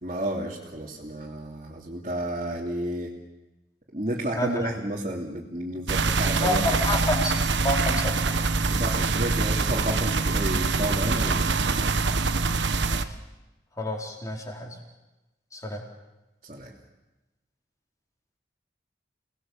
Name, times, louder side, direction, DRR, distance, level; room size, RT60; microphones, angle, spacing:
voice 1, 0.0-3.1 3.9-6.6 8.7-12.0 16.5-16.7, right 1 dB, 40° right, -4 dB, 2.9 m, -31 dB
voice 2, 4.4-4.7 6.4-8.5 12.9-13.1 13.8-14.8 15.5-15.8, left 1 dB, 20° left, 0 dB, 4.4 m, -29 dB
sound 1, 5.9-13.0, right 3 dB, 85° right, 1.1 m, -24 dB
29.5 x 19.5 x 7.4 m, 1.1 s
head